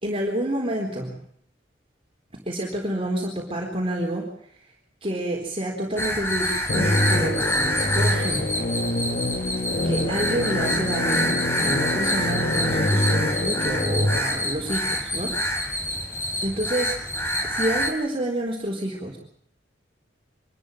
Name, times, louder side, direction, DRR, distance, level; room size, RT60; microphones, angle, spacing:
voice 1, 0.0-1.1 2.5-4.3 5.0-8.7 9.4-15.9 16.4-17.0 17.4-19.2, right 1 dB, 30° right, -1 dB, 4.0 m, -29 dB
sound 1, 6.0-17.9, equal, 15° left, 3.2 m, -27 dB
sound 2, 6.7-14.2, left 1 dB, 45° left, 1.2 m, -26 dB
25.0 x 13.5 x 9.0 m, 0.65 s
head